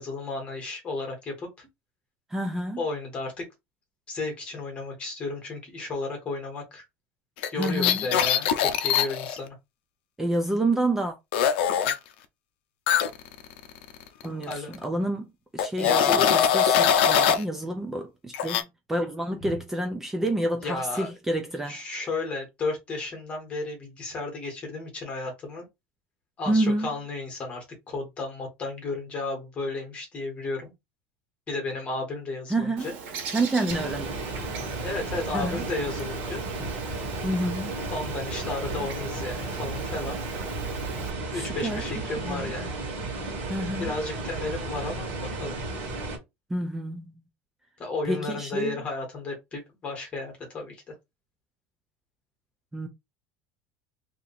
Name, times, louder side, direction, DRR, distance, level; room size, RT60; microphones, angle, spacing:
voice 1, 0.0-1.7 2.8-3.4 4.1-6.8 7.5-9.5 14.5-14.9 15.7-16.4 19.4-19.6 20.6-21.1 21.7-25.7 26.4-30.7 31.5-32.9 34.8-36.4 37.9-40.2 41.3-42.8 43.8-45.6 47.8-50.9, left 3 dB, 20° left, 1.4 m, -33 dB
voice 2, 2.3-2.8 7.6-8.1 10.2-11.2 14.2-21.8 26.5-26.9 32.5-32.9 33.3-34.2 35.3-35.6 37.2-37.7 41.3-41.8 42.2-42.5 43.4-43.9 46.5-47.2 48.0-48.8 52.7-52.9, right 1 dB, 5° right, 0.4 m, -28 dB
sound 1, 7.4-9.4 11.3-11.9 12.9-14.3 14.5-14.7 15.6-17.4 18.3-18.6, left 8 dB, 85° left, 0.6 m, -22 dB
Bird, 32.8-41.1, right 5 dB, 65° right, 1.5 m, -40 dB
sound 2, 33.7-46.2, right 2 dB, 40° right, 1.6 m, -33 dB
2.8 x 2.5 x 4.0 m
cardioid pair, 180°, 6 cm